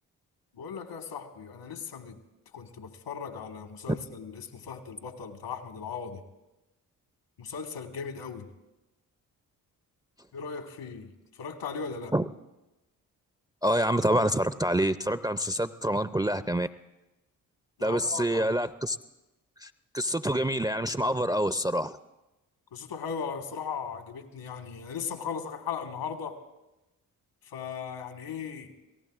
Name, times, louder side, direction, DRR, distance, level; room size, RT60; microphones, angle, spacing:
voice 1, 0.5-2.2 2.5-6.2 7.4-8.5 10.3-12.1 17.8-18.5 22.7-26.4 27.4-28.7, left 6 dB, 70° left, 6 dB, 1.7 m, -38 dB
voice 2, 13.6-16.7 17.8-19.0 19.6-22.0, equal, 10° right, 12 dB, 0.5 m, -27 dB
27.5 x 18.0 x 2.5 m, 1.0 s
hypercardioid pair, 40°, 44 cm